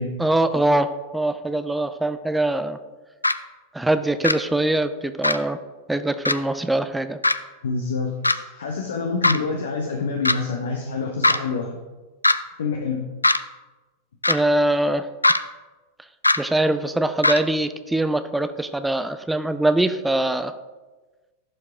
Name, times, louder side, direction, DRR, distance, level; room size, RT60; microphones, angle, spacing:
voice 1, 0.2-2.8 3.7-5.6 5.9-7.2 14.3-15.1 16.4-20.5, right 1 dB, 5° right, 10 dB, 0.4 m, -22 dB
sound 1, 3.2-3.3 4.2-4.3 5.2-5.4 6.2-6.3 7.2-7.3 8.2-8.3 9.2-9.4 10.2-10.3 11.2-11.4 12.2-12.3 13.2-13.4 14.2-14.4 15.2-15.4 16.2-16.4 17.2-17.4, left 2 dB, 85° left, 0.3 m, -18 dB
voice 2, 7.6-11.8 12.6-13.1, left 4 dB, 65° left, 2 dB, 0.8 m, -27 dB
11.0 x 4.7 x 3.6 m, 1.2 s
figure-of-eight pair, 90°, 0 cm